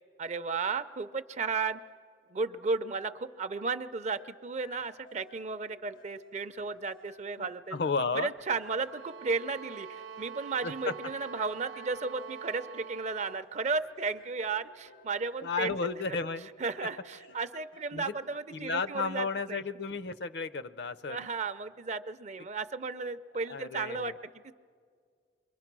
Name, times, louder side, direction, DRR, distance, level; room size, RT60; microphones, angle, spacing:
voice 1, 0.2-1.8 2.3-7.8 8.1-15.8 16.1-16.2 16.6-19.6 21.1-24.1 24.4-24.5, right 4 dB, 35° right, 12 dB, 0.5 m, -34 dB
sound 1, 4.1-18.4, equal, 75° left, 1.0 m, -57 dB
voice 2, 7.7-8.3 10.6-10.9 15.4-16.5 17.9-18.1 18.5-21.3 23.5-24.2, left 4 dB, 60° left, 14 dB, 0.6 m, -33 dB
sound 2, 8.8-13.5, right 7 dB, 70° right, 0.8 m, -45 dB
28.5 x 23.0 x 6.1 m, 2.2 s
head